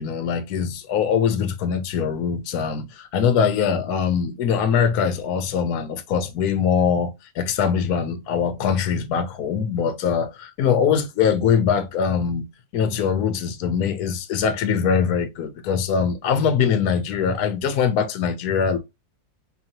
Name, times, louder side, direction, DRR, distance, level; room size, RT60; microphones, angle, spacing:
voice 1, 0.0-12.5 12.7-18.8, left 7 dB, 60° left, 1.1 m, -22 dB
4.7 x 2.7 x 2.8 m
omnidirectional pair, 2.1 m